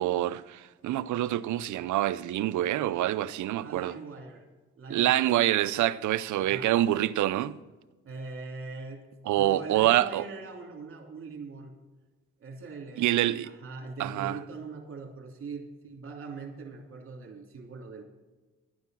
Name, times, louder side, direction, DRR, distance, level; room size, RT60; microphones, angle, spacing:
voice 1, 0.0-3.9 4.9-7.6 9.3-10.2 13.0-13.5 14.0-14.4, right 13 dB, 75° right, 0.7 m, -26 dB
voice 2, 3.6-4.4 4.7-5.4 6.3-6.7 8.0-9.1 9.4-11.7 12.4-13.2 13.4-18.0, right 4 dB, 45° right, 2.8 m, -41 dB
12.5 x 9.5 x 6.2 m
cardioid pair, 90°, 30 cm